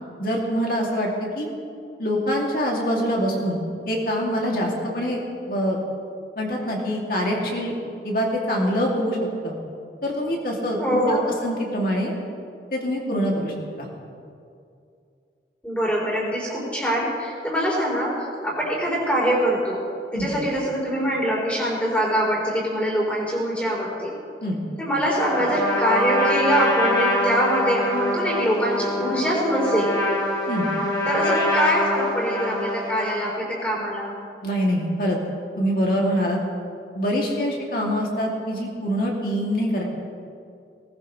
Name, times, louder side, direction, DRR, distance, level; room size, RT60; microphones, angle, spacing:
voice 1, 0.2-1.5 2.0-3.6 3.9-5.2 5.5-5.8 6.4-7.7 8.0-9.2 9.4-9.5 10.0-12.1 12.7-13.9 20.1-20.3 24.4-24.6 30.5-30.7 34.4-35.2 35.6-36.4 36.9-39.8, equal, 55° left, -2 dB, 2.7 m, -24 dB
voice 2, 10.8-11.3 15.6-18.1 18.4-19.8 20.1-24.1 24.8-29.9 31.1-34.1, equal, 10° left, -5 dB, 4.1 m, -23 dB
Trumpet, 25.1-33.2, left 1 dB, 25° left, 3.5 m, -24 dB
19.5 x 19.0 x 3.3 m, 2.4 s
head